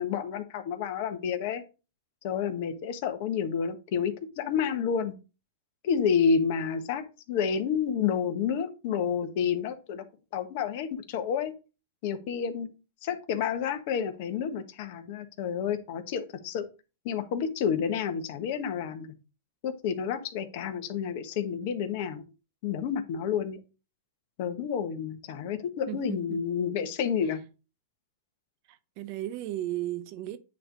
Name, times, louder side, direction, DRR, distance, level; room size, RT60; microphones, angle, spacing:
voice 1, 0.0-1.6 2.2-5.1 5.8-10.0 10.3-11.5 12.0-12.7 13.0-16.6 17.0-19.1 19.6-22.2 22.6-23.6 24.4-27.4, left 7 dB, 55° left, 1.2 m, -29 dB
voice 2, 25.9-26.4 28.7-30.4, right 14 dB, 45° right, 0.8 m, -35 dB
9.1 x 3.2 x 5.1 m
hypercardioid pair, 135°, 0 cm